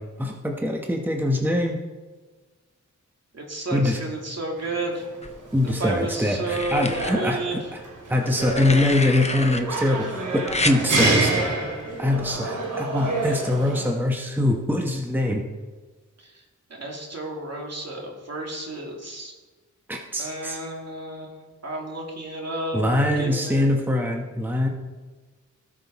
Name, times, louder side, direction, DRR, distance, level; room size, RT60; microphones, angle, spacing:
voice 1, 0.2-1.8 3.7-4.0 5.5-7.8 8.1-11.5 12.0-15.4 19.9-20.6 22.7-24.7, left 1 dB, 5° right, 1 dB, 1.2 m, -23 dB
voice 2, 3.3-5.0 5.8-7.7 16.2-16.4 16.7-19.3 20.2-23.7, right 1 dB, 55° right, -1 dB, 2.6 m, -32 dB
sound 1, 4.6-13.9, right 2 dB, 85° right, 2.8 m, -28 dB
sound 2, 5.2-5.9 6.5-7.1 8.3-9.6 10.5-10.8 12.2-12.4, left 2 dB, 20° left, 0.8 m, -29 dB
18.0 x 6.2 x 4.2 m, 1.3 s
wide cardioid pair, 95°, 30 cm